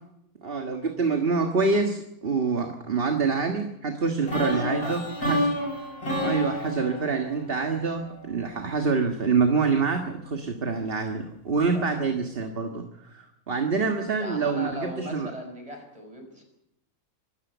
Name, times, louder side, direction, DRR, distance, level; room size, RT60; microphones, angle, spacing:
voice 1, 0.4-5.6 6.2-15.3, right 4 dB, 40° right, 4 dB, 1.8 m, -26 dB
voice 2, 4.2-5.0 11.7-11.9 14.2-16.4, equal, 25° right, 4 dB, 5.7 m, -38 dB
sound 1, 4.3-8.2, equal, 80° left, 7.4 m, -29 dB
24.0 x 14.5 x 8.2 m, 0.81 s
omnidirectional pair, 1.5 m